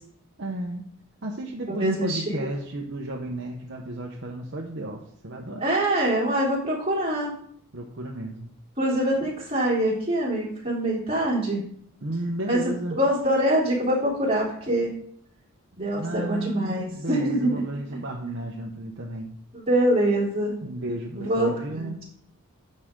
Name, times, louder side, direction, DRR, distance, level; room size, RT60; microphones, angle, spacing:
voice 1, 0.4-0.9 1.2-5.7 7.7-8.5 12.0-13.0 15.9-19.3 20.6-22.0, right 1 dB, 55° right, 0 dB, 1.0 m, -33 dB
voice 2, 1.7-2.5 5.6-7.4 8.8-11.7 12.5-12.6 12.9-14.9 15.8-17.6 18.2-18.3 19.5-20.5 21.2-22.0, right 1 dB, 25° right, -5 dB, 3.4 m, -24 dB
10.5 x 6.6 x 3.8 m, 0.64 s
head